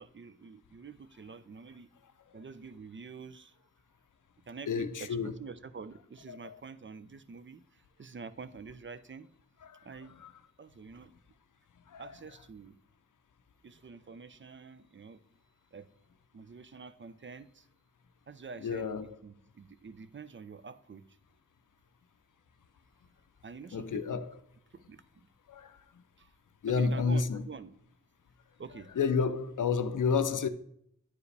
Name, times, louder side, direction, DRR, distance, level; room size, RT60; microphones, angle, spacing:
voice 1, 0.0-1.9 2.3-3.6 4.5-9.3 9.8-10.2 10.6-11.1 12.0-12.8 13.6-15.2 15.7-15.9 16.3-17.7 18.3-18.9 19.2-21.2 23.4-24.2 24.7-25.0 26.2-26.3 26.7-27.8 28.6-28.9, right 5 dB, 40° right, 0.5 m, -47 dB
voice 2, 4.7-5.3 6.3-6.5 9.6-9.8 10.2-10.3 11.9-12.0 18.6-19.1 23.7-24.3 25.5-25.8 26.6-27.4 29.0-30.5, left 5 dB, 80° left, 0.6 m, -30 dB
9.4 x 4.8 x 3.3 m
wide cardioid pair, 50°, 31 cm